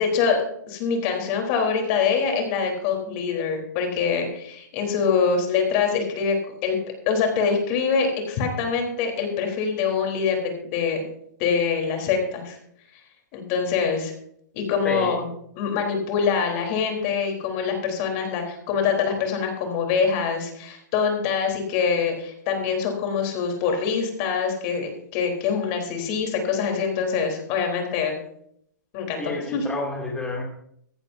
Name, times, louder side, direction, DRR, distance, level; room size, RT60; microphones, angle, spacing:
voice 1, 0.0-6.4 6.6-6.8 7.1-11.0 11.4-12.6 13.3-14.1 14.5-15.3 15.5-28.1 28.9-29.7, left 6 dB, 40° left, 3 dB, 3.8 m, -24 dB
voice 2, 14.8-15.2 29.2-30.4, left 1 dB, 10° left, -3 dB, 2.6 m, -30 dB
15.5 x 14.5 x 2.7 m, 0.70 s
hypercardioid pair, 140°, 10 cm